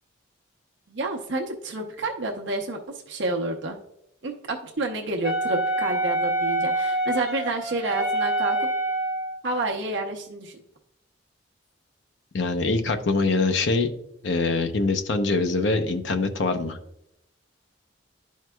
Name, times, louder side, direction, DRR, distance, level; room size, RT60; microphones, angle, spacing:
voice 1, 0.9-3.8 4.2-8.7 9.4-10.6, right 2 dB, 70° right, 1 dB, 0.8 m, -29 dB
Wind instrument woodwind instrument, 5.2-9.4, right 1 dB, 5° right, 2.3 m, -26 dB
voice 2, 12.3-13.9 14.2-16.8, left 3 dB, 75° left, 7 dB, 0.7 m, -24 dB
11.5 x 4.6 x 2.3 m, 0.78 s
head